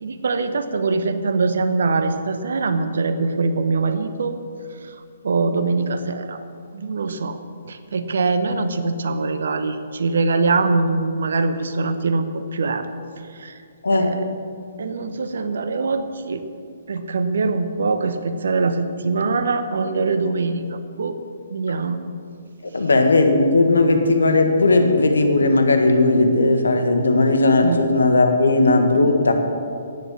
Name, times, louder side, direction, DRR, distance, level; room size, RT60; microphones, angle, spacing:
voice 1, 0.0-4.4 5.2-6.4 6.7-7.4 7.6-12.9 13.3-13.6 13.9-14.3 14.8-16.4 16.9-21.2 21.5-22.0 27.6-27.8, right 3 dB, 65° right, 10 dB, 1.0 m, -23 dB
voice 2, 13.8-14.2 22.7-29.3, left 2 dB, 75° left, 6 dB, 1.6 m, -17 dB
10.5 x 9.8 x 7.3 m, 2.4 s
figure-of-eight pair, 130°, 0 cm